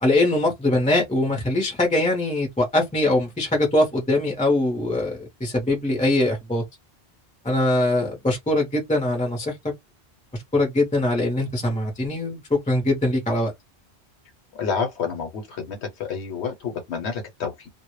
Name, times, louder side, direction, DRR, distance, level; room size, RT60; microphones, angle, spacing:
voice 1, 0.0-6.6 7.4-9.5 10.5-13.5, left 2 dB, 10° left, 0.5 m, -22 dB
voice 2, 14.6-17.7, left 6 dB, 90° left, 0.9 m, -29 dB
2.0 x 2.0 x 2.9 m
omnidirectional pair, 1.1 m